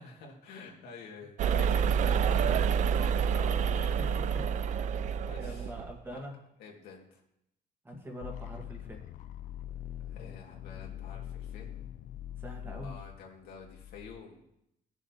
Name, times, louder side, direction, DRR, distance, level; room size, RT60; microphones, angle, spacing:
voice 1, 0.0-3.0 3.7-4.2 5.2-5.7 6.1-6.2 6.6-7.2 10.1-11.7 12.6-14.4, left 5 dB, 85° left, -1 dB, 2.1 m, -49 dB
sound 1, 1.4-5.9, right 7 dB, 50° right, 0.4 m, -28 dB
voice 2, 3.3-4.4 4.9-6.4 7.8-9.0 12.4-13.0, equal, 15° right, 0 dB, 1.6 m, -44 dB
sound 2, 8.2-14.2, left 11 dB, 55° left, 0.4 m, -43 dB
16.5 x 7.0 x 2.9 m, 0.81 s
cardioid pair, 140°, 16 cm